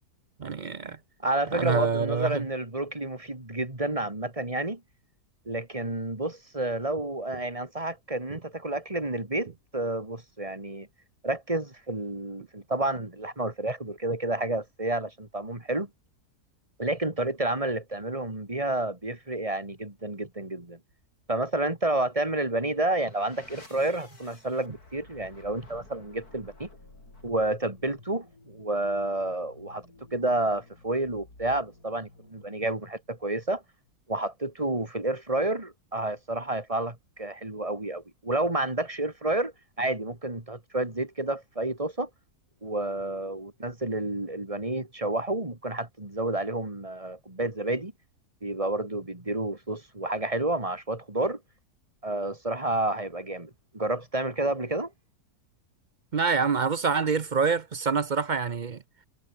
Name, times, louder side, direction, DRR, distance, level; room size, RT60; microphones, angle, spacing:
voice 1, 0.4-1.0 1.5-2.5 56.1-58.8, right 5 dB, 45° right, 0.6 m, -26 dB
voice 2, 1.2-4.8 5.4-10.9 11.2-15.9 16.8-20.8 21.3-26.7 27.2-29.9 30.1-33.6 34.1-39.5 39.8-42.1 42.6-47.9 48.4-51.4 52.0-54.9, right 2 dB, 20° right, 3.3 m, -30 dB
sound 1, 22.5-33.2, left 2 dB, 65° left, 6.6 m, -53 dB
omnidirectional pair, 1.7 m